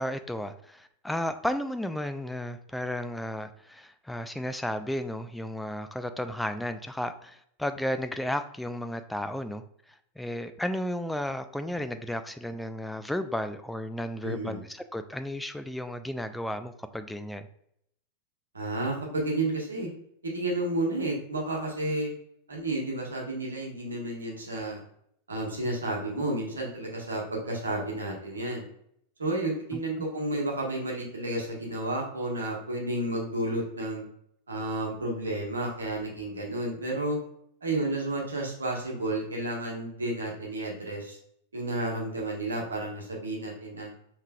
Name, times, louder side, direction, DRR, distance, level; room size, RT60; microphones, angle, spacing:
voice 1, 0.0-9.6 10.2-17.5 29.7-29.8, left 1 dB, 5° left, 8 dB, 0.3 m, -33 dB
voice 2, 14.2-14.6 18.5-19.9 20.2-22.1 22.5-24.8 25.3-28.7 29.2-34.0 34.5-37.2 37.6-41.2 41.5-43.9, right 1 dB, 75° right, -1 dB, 1.2 m, -31 dB
5.5 x 3.1 x 2.3 m, 0.71 s
figure-of-eight pair, 90°, 0 cm